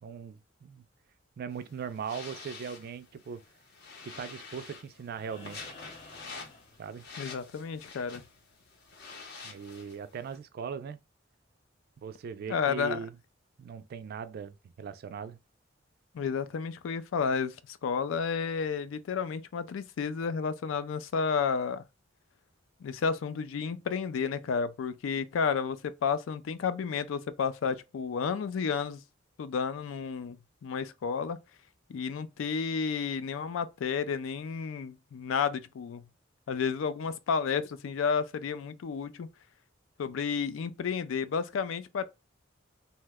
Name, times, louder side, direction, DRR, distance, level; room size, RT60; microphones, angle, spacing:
voice 1, 0.0-0.8 1.4-3.4 4.0-5.7 6.8-7.0 9.4-11.0 12.0-13.2 13.6-15.4, right 6 dB, 55° right, 0.3 m, -39 dB
sound 1, 1.5-10.4, left 4 dB, 60° left, 0.8 m, -48 dB
sound 2, 5.1-7.4 9.2-9.3, left 3 dB, 30° left, 0.8 m, -52 dB
voice 2, 7.2-8.2 12.5-13.0 16.1-21.8 22.8-29.0 29.4-30.4 30.6-31.4 31.9-36.0 36.5-39.3 40.0-42.0, left 6 dB, 80° left, 0.4 m, -31 dB
2.8 x 2.1 x 3.4 m
head